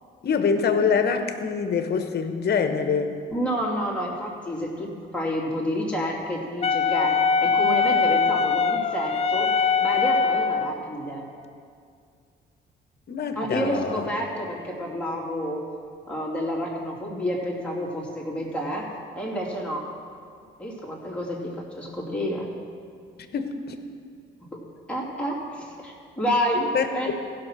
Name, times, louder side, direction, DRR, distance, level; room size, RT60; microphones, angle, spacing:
voice 1, 0.2-3.1 13.1-14.1 23.3-23.8 26.7-27.2, left 6 dB, 55° left, 7 dB, 1.1 m, -25 dB
voice 2, 3.3-11.2 13.4-15.7 16.1-18.9 19.2-19.9 20.6-22.5 24.4-27.2, equal, 5° left, -5 dB, 2.6 m, -29 dB
Wind instrument woodwind instrument, 6.6-10.8, left 5 dB, 30° left, 0.4 m, -22 dB
15.0 x 6.1 x 6.1 m, 2.3 s
cardioid pair, 90°, 20 cm